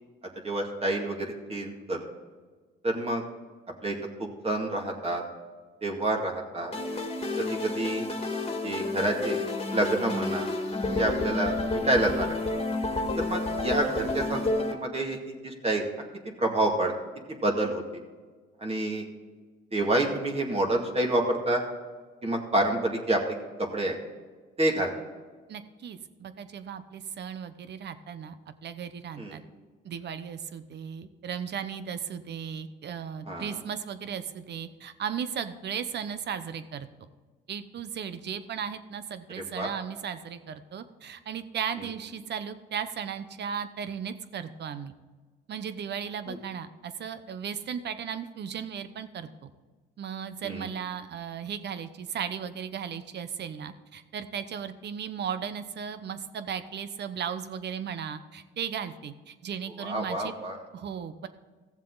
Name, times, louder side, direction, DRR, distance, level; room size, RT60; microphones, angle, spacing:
voice 1, 0.4-2.0 2.8-3.2 3.8-4.0 4.4-5.2 5.8-6.7 7.4-8.1 8.6-9.4 9.7-10.5 11.0-12.3 13.2-15.8 16.4-16.9 17.4-17.8 18.6-19.0 19.7-21.6 22.2-23.2 23.6-24.0 24.6-24.9 29.2-29.4 33.3-33.6 39.4-39.7 46.3-46.4 50.4-50.7 59.8-60.6, right 1 dB, 30° right, 0 dB, 2.1 m, -28 dB
sound 1, 6.7-14.7, left 2 dB, 30° left, 1.8 m, -30 dB
voice 2, 25.5-29.4 29.8-36.9 37.5-44.9 45.5-49.5 50.0-60.3 60.7-61.3, right 7 dB, 60° right, 11 dB, 0.9 m, -36 dB
15.0 x 7.4 x 4.0 m, 1.4 s
cardioid pair, 90°, 20 cm